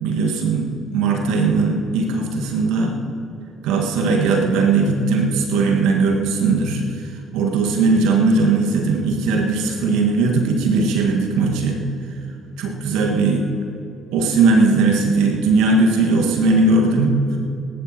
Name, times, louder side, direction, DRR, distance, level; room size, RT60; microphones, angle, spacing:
voice 1, 0.0-3.0 3.6-6.8 7.3-11.8 12.6-13.5 14.1-17.2, right 3 dB, 65° right, 1 dB, 1.9 m, -18 dB
19.0 x 18.5 x 3.1 m, 2.6 s
figure-of-eight pair, 50°, 0 cm